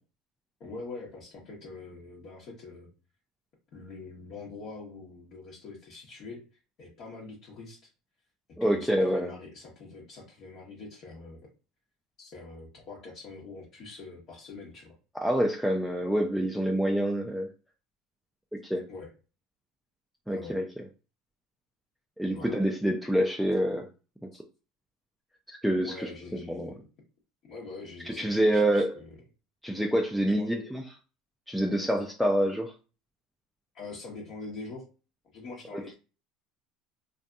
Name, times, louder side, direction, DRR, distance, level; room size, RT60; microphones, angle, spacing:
voice 1, 0.6-2.9 3.7-6.4 6.8-7.9 8.6-11.4 12.2-14.9 18.9-19.1 20.3-20.6 22.3-22.6 24.3-24.4 25.8-26.8 27.4-29.2 30.3-30.5 33.7-34.9 35.2-35.9, left 3 dB, 55° left, 0.9 m, -44 dB
voice 2, 8.6-9.3 15.2-17.5 18.6-18.8 20.3-20.6 22.2-23.9 24.2-24.3 25.5-26.1 26.5-26.7 28.1-28.9 29.6-30.8 31.5-32.7 35.7-35.9, right 1 dB, ahead, 0.4 m, -27 dB
2.6 x 2.5 x 2.2 m
hypercardioid pair, 90°, 0 cm